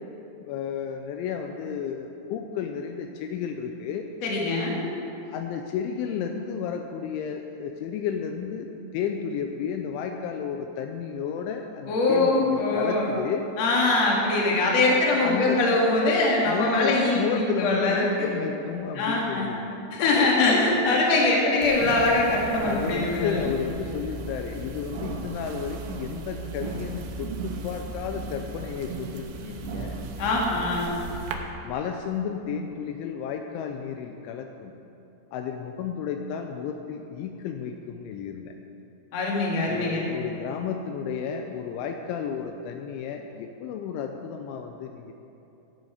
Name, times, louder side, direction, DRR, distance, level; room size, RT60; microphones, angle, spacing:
voice 1, 0.5-4.1 5.3-8.7 8.9-13.5 14.4-14.5 15.2-15.6 16.4-19.8 22.6-30.0 31.7-34.7 35.3-38.6 39.7-45.1, left 7 dB, 85° left, 5 dB, 2.8 m, -32 dB
voice 2, 4.2-4.8 11.9-13.1 13.6-18.3 18.9-19.5 19.9-23.5 30.2-30.9 39.1-40.0, left 2 dB, 55° left, -3 dB, 2.0 m, -23 dB
sound 1, 21.6-31.4, right 3 dB, 80° right, 2.8 m, -36 dB
15.0 x 8.3 x 4.9 m, 2.9 s
omnidirectional pair, 5.7 m